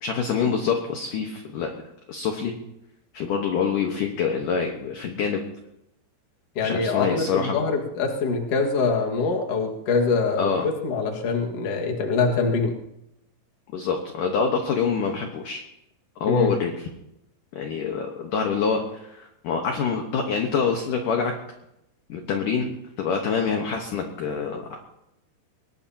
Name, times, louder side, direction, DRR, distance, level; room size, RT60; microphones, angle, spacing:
voice 1, 0.0-1.7 2.1-2.5 3.1-5.4 6.6-7.6 10.4-10.7 13.7-15.6 16.2-16.9 17.5-21.3 22.1-24.8, left 6 dB, 65° left, 3 dB, 2.3 m, -26 dB
voice 2, 6.6-12.8 16.3-16.5, left 4 dB, 45° left, 1 dB, 2.1 m, -24 dB
22.5 x 20.0 x 2.9 m, 0.85 s
omnidirectional pair, 5.3 m